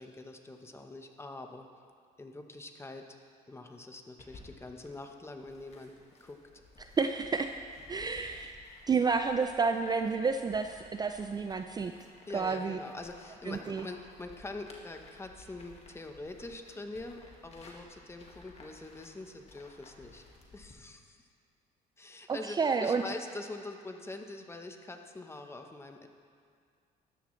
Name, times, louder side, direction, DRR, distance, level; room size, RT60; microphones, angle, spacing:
voice 1, 0.0-1.7 2.2-3.2 3.5-5.9 6.2-6.4 12.3-20.3 20.5-21.2 22.0-26.1, left 2 dB, 15° left, 5 dB, 0.9 m, -44 dB
sound 1, 4.2-20.8, left 3 dB, 40° left, 1.7 m, -56 dB
voice 2, 6.8-7.5 7.9-8.5 8.9-11.9 12.3-12.8 13.5-13.8 22.3-23.0, right 5 dB, 25° right, 7 dB, 0.4 m, -30 dB
14.0 x 11.5 x 3.2 m, 2.2 s
cardioid pair, 110°, 17 cm